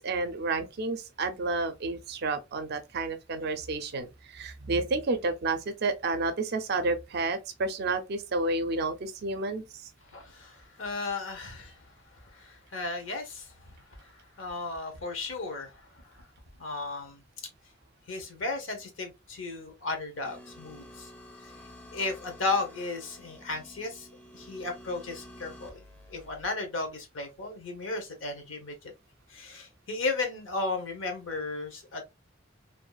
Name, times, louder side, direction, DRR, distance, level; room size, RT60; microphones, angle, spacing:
voice 1, 0.0-9.6, right 3 dB, 55° right, 0.4 m, -30 dB
voice 2, 10.1-11.8 12.3-13.8 14.4-15.8 16.6-17.2 18.1-21.1 21.9-24.1 24.3-25.8 26.1-28.8 29.3-32.0, left 3 dB, 75° left, 0.8 m, -34 dB
sound 1, 20.2-26.5, left 1 dB, 10° left, 0.4 m, -50 dB
2.6 x 2.3 x 2.2 m
head